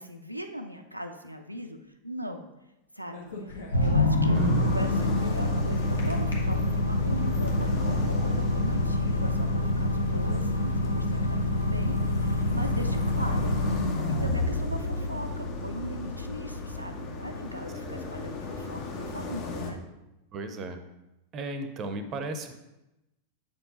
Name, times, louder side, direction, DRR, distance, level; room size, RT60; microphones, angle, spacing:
voice 1, 0.0-1.8 2.0-2.4 2.9-3.3 3.8-13.6 14.1-19.8, equal, 90° right, 4 dB, 0.4 m, -39 dB
sound 1, 3.0-4.3 6.0-6.3 6.9-7.6, left 3 dB, 65° left, 1.2 m, -42 dB
sound 2, 3.7-18.2, left 1 dB, 85° left, 0.6 m, -27 dB
sound 3, 4.3-19.7, left 3 dB, 40° left, 0.9 m, -38 dB
voice 2, 4.3-4.8 17.9-18.1 20.3-20.8 21.3-22.5, right 2 dB, 30° right, 8 dB, 0.6 m, -36 dB
7.0 x 4.5 x 3.8 m, 0.95 s
figure-of-eight pair, 90°, 0 cm